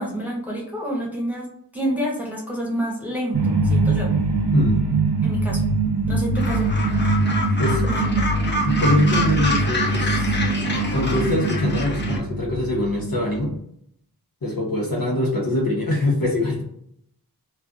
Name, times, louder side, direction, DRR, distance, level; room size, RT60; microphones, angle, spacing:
voice 1, 0.0-4.1 5.2-5.6 6.1-6.7 7.8-8.3, equal, 5° right, -4 dB, 1.2 m, -28 dB
sound 1, 3.3-13.5, right 3 dB, 80° right, 0.7 m, -23 dB
voice 2, 4.5-4.9 7.6-7.8 8.6-13.5 14.4-16.6, left 1 dB, 60° left, -2 dB, 1.3 m, -23 dB
Gull seagull, 6.3-12.2, left 2 dB, 30° left, 0.8 m, -27 dB
3.2 x 2.4 x 2.5 m, 0.70 s
cardioid pair, 45°, 38 cm